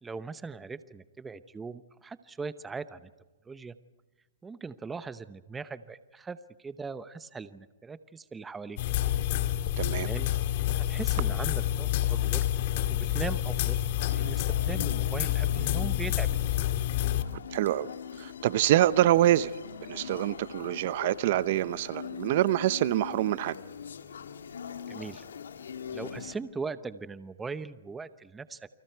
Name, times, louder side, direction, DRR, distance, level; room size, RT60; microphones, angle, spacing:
voice 1, 0.0-3.1 3.5-3.8 4.4-8.8 9.9-10.3 10.8-12.5 12.9-16.6 24.9-25.2 25.9-28.7, right 4 dB, 10° right, 0.8 m, -40 dB
sound 1, 8.8-17.2, left 13 dB, 45° left, 2.1 m, -28 dB
voice 2, 9.8-10.1 17.5-17.9 18.2-19.5 19.9-23.6, right 13 dB, 50° right, 0.8 m, -25 dB
sound 2, 14.0-26.4, left 7 dB, 85° left, 2.2 m, -42 dB
29.0 x 26.0 x 4.6 m
hypercardioid pair, 150°, 0 cm